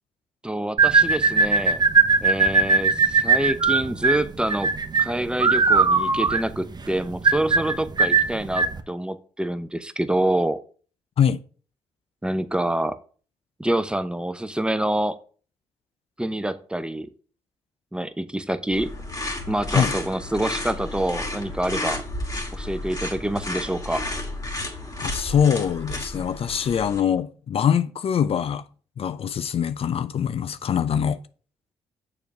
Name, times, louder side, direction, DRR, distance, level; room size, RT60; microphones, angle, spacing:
voice 1, 0.4-1.8 2.2-4.7 5.0-10.6 12.2-13.0 13.6-15.2 16.2-17.1 17.9-18.9 19.5-22.0 22.5-24.0, right 1 dB, 5° right, 0.8 m, -26 dB
sound 1, 0.8-8.8, right 5 dB, 35° right, 1.0 m, -19 dB
sound 2, 18.7-27.0, left 2 dB, 30° left, 2.4 m, -32 dB
voice 2, 25.0-28.6 29.0-31.2, left 8 dB, 50° left, 0.6 m, -23 dB
6.8 x 4.9 x 6.0 m
hypercardioid pair, 50°, 13 cm